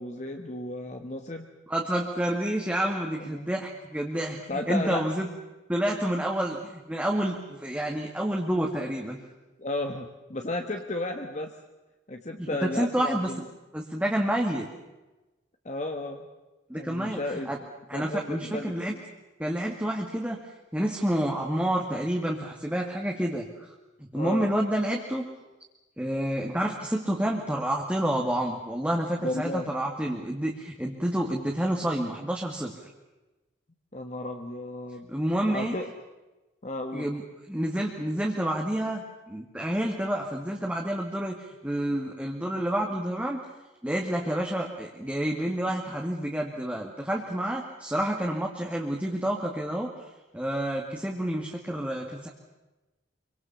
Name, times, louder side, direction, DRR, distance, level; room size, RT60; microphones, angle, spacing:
voice 1, 0.0-1.5 3.2-3.5 4.5-5.0 9.6-11.5 12.1-13.4 15.6-16.3 16.7-17.5 17.9-19.0 24.1-24.5 29.2-29.7 33.9-35.1 35.5-35.9 36.6-37.1, left 1 dB, 40° left, 4 dB, 1.5 m, -33 dB
voice 2, 1.7-5.3 5.7-9.2 12.4-13.3 13.7-14.7 16.7-17.2 17.5-17.6 17.9-18.9 19.4-20.4 20.7-23.7 24.1-25.3 26.0-32.7 35.1-35.8 36.9-37.2 37.5-43.4 43.8-52.3, right 1 dB, 5° right, 0 dB, 2.0 m, -29 dB
26.0 x 24.5 x 7.0 m, 1.1 s
head